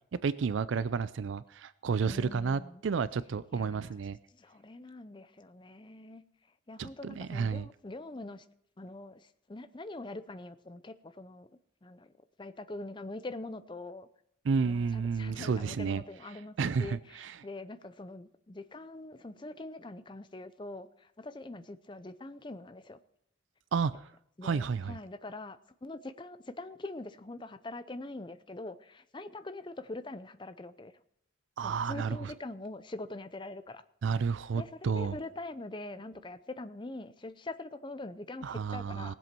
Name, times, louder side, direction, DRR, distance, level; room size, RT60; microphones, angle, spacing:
voice 1, 0.2-4.2 6.8-7.7 14.4-16.0 16.6-17.3 23.7-24.1 24.4-24.9 31.6-32.3 34.0-35.2 38.4-39.1, right 5 dB, 80° right, 0.4 m, -31 dB
voice 2, 2.0-2.8 3.5-4.0 4.3-6.2 6.7-8.5 8.8-11.5 11.8-12.1 12.4-14.1 14.6-23.0 24.4-30.9 31.6-33.8 34.6-39.2, left 2 dB, 25° left, 0.6 m, -43 dB
19.0 x 7.7 x 4.5 m
head